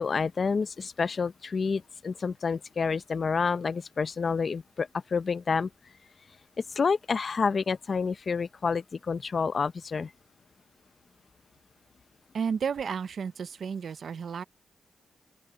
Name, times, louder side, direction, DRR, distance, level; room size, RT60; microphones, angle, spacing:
voice 1, 0.0-5.7 6.8-10.1, left 5 dB, 40° left, 0.6 m, -29 dB
voice 2, 12.3-14.4, right 6 dB, 55° right, 0.7 m, -32 dB
open air
wide cardioid pair, 125°, 0 cm